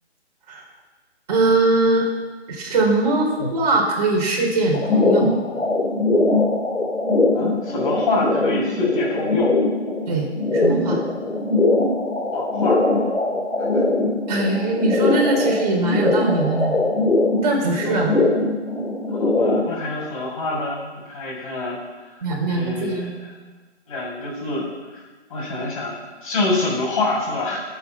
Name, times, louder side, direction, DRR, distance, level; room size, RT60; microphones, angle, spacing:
voice 1, 1.3-2.1 2.5-5.3 10.1-11.0 14.3-16.7 17.4-18.2 22.2-23.1, right 2 dB, 35° right, -1 dB, 4.5 m, -21 dB
sound 1, 4.7-19.6, left 2 dB, 90° left, 3.1 m, -21 dB
voice 2, 7.3-9.5 12.3-12.8 13.7-13.8 17.8-18.1 19.1-21.8 22.5-23.3 23.9-25.0 25.3-27.6, left 2 dB, 30° left, -3 dB, 6.4 m, -26 dB
21.5 x 9.0 x 6.1 m, 1.3 s
hypercardioid pair, 160°, 34 cm